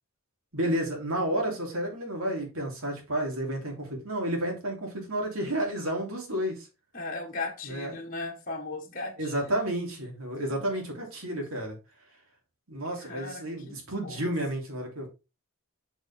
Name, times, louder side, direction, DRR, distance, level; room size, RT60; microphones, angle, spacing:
voice 1, 0.5-6.7 7.6-8.0 9.2-11.8 12.7-15.1, right 1 dB, 70° right, 3.0 m, -31 dB
voice 2, 6.9-9.5 10.5-10.8 13.0-13.7 14.0-14.3, left 3 dB, 35° left, 1.6 m, -37 dB
6.6 x 6.1 x 3.6 m
head